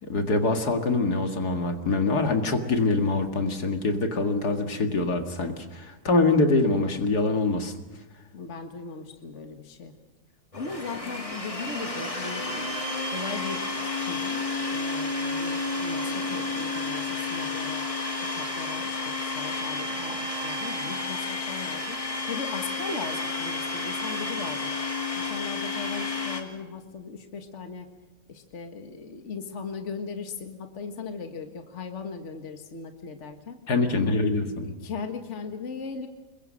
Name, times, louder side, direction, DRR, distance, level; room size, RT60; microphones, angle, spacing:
voice 1, 0.0-7.7 33.7-34.7, left 3 dB, 70° left, 5 dB, 2.5 m, -24 dB
voice 2, 8.3-9.9 10.5-12.7 13.1-14.4 14.7-18.0 18.3-22.0 22.3-24.7 25.2-27.9 28.3-33.6 34.6-36.1, left 5 dB, 45° left, 5 dB, 1.9 m, -38 dB
Domestic sounds home sounds, 10.5-26.4, left 3 dB, 20° left, 2.4 m, -31 dB
sound 1, 10.7-22.6, equal, 20° right, 7.0 m, -49 dB
27.0 x 22.0 x 6.4 m, 1.1 s
omnidirectional pair, 1.7 m